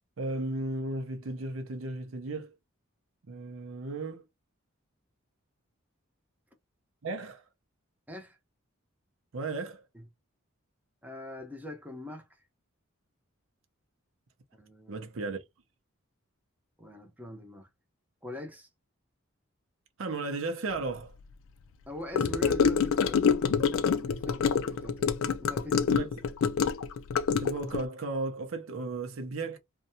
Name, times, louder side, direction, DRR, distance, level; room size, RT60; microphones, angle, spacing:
voice 1, 0.2-2.5 3.2-4.2 7.0-7.4 9.3-9.8 14.9-15.4 20.0-21.1 25.9-26.1 27.4-29.6, right 2 dB, 70° right, 0.6 m, -35 dB
voice 2, 8.1-8.4 9.9-10.1 11.0-12.3 14.6-15.0 16.8-17.7 18.2-18.7 21.9-23.3 23.7-25.1 25.4-26.0, left 1 dB, 10° right, 0.7 m, -42 dB
Gurgling / Car passing by / Sink (filling or washing), 22.1-27.8, left 6 dB, 70° left, 0.4 m, -26 dB
2.6 x 2.2 x 2.6 m
head